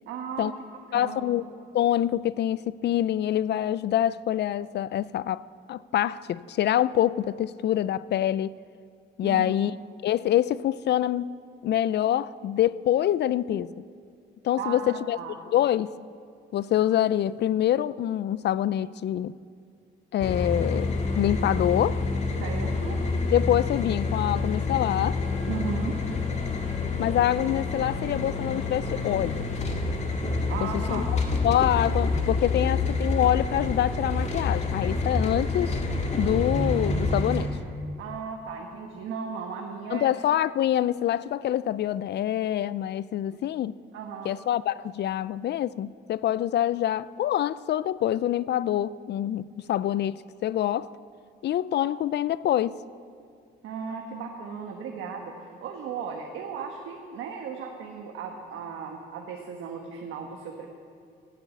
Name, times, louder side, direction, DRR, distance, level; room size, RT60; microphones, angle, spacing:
voice 1, 0.1-0.5 0.9-1.3 9.2-9.5 14.6-15.3 22.4-23.0 25.5-25.9 30.5-31.1 38.0-40.1 40.8-40.9 43.3-43.4 43.9-44.3 53.6-60.7, right 6 dB, 85° right, 1.3 m, -36 dB
voice 2, 0.9-1.5 1.7-5.4 5.7-8.5 9.2-9.8 10.0-11.2 11.6-13.7 14.4-15.2 15.5-15.9 16.5-19.3 20.1-22.0 23.3-25.2 27.0-29.5 30.6-31.0 31.4-35.8 36.2-37.5 39.9-43.8 44.2-50.9 51.4-52.8, left 11 dB, 60° left, 0.4 m, -25 dB
sound 1, 20.2-37.5, left 3 dB, 35° left, 1.9 m, -28 dB
13.0 x 9.9 x 8.2 m
cardioid pair, 90°, 20 cm